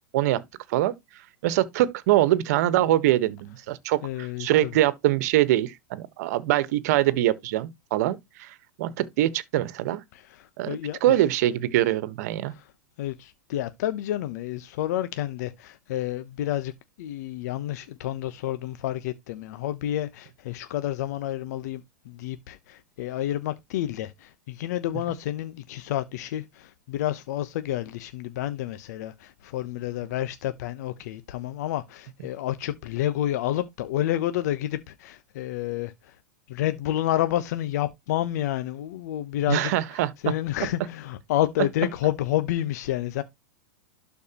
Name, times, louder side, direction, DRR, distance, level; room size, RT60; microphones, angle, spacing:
voice 1, 1.4-10.0 10.6-12.5 39.5-40.1, right 14 dB, 60° right, 1.3 m, -23 dB
voice 2, 4.0-4.7 10.1-11.0 12.5-12.7 13.0-16.7 17.0-36.2 36.5-43.2, left 13 dB, 65° left, 0.9 m, -29 dB
12.0 x 4.7 x 3.0 m
hypercardioid pair, 115°, 10 cm